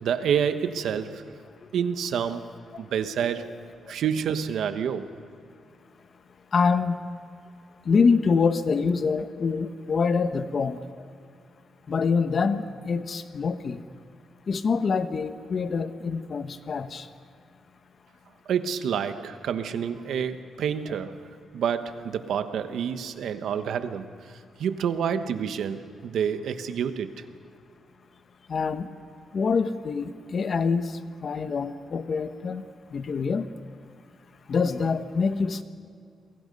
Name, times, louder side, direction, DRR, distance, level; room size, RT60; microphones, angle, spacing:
voice 1, 0.0-1.2 1.7-3.5 3.9-5.1 18.5-21.2 21.5-24.1 24.6-27.1, right 8 dB, 75° right, 9 dB, 1.3 m, -28 dB
voice 2, 6.5-7.0 7.8-10.8 11.9-13.8 14.5-17.1 28.5-28.9 29.3-30.9 31.2-32.6 32.9-33.5 34.5-35.6, left 5 dB, 45° left, 10 dB, 1.1 m, -25 dB
28.5 x 23.0 x 5.5 m, 2.4 s
cardioid pair, 125°, 0 cm